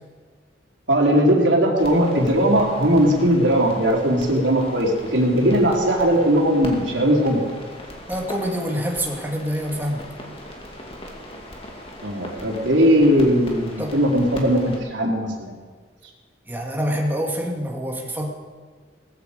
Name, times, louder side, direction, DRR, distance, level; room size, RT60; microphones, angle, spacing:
voice 1, 0.9-7.5 12.0-15.5, equal, 85° right, -1 dB, 3.8 m, -19 dB
sound 1, 1.8-14.8, left 1 dB, 30° left, 2.4 m, -39 dB
voice 2, 8.1-10.0 13.8-14.0 16.5-18.3, equal, 10° right, 0 dB, 2.1 m, -26 dB
19.0 x 15.0 x 5.2 m, 1.5 s
head